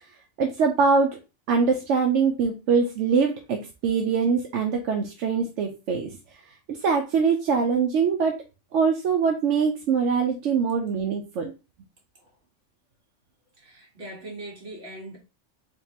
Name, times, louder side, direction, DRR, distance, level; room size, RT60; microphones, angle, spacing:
voice 1, 0.4-1.2 1.5-6.1 6.7-8.4 8.7-11.5, right 5 dB, 80° right, 0.9 m, -23 dB
voice 2, 13.6-15.2, right 1 dB, 55° right, 1.7 m, -41 dB
3.7 x 3.4 x 2.8 m
omnidirectional pair, 1.2 m